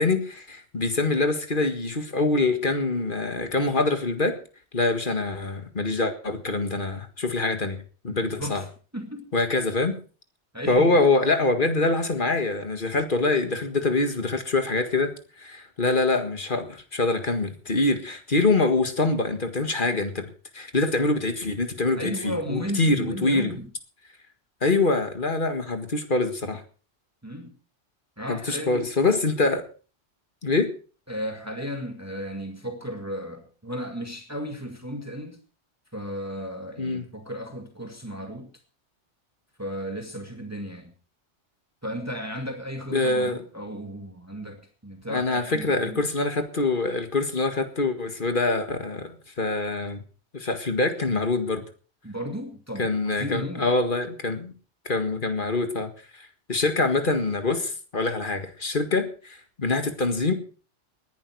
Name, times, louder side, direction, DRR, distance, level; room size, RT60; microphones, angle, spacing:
voice 1, 0.0-4.4 4.7-7.8 8.0-8.6 9.3-10.0 10.7-20.3 20.5-23.6 24.6-26.6 28.3-29.7 30.4-30.7 36.8-37.0 42.9-43.4 45.1-50.0 50.3-51.6 52.8-54.5 54.9-60.3, left 3 dB, 45° left, 7 dB, 2.0 m, -25 dB
voice 2, 8.1-8.7 8.9-9.3 10.5-11.0 22.0-23.7 27.2-27.5 28.2-28.9 31.1-35.4 35.9-38.5 39.6-40.9 41.8-46.0 52.0-53.7, equal, 15° right, 4 dB, 2.1 m, -35 dB
19.5 x 11.0 x 4.7 m, 0.39 s
omnidirectional pair, 1.2 m